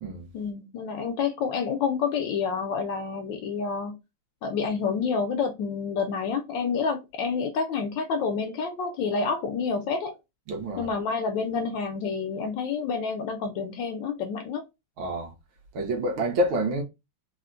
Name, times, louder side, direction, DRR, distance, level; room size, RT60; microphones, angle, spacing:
voice 1, 0.3-4.0 4.4-10.1 10.8-14.6, left 5 dB, 70° left, 1.2 m, -28 dB
voice 2, 10.5-10.9 15.0-15.3 15.7-16.8, right 1 dB, 75° right, 1.7 m, -27 dB
4.2 x 2.1 x 2.4 m
omnidirectional pair, 2.3 m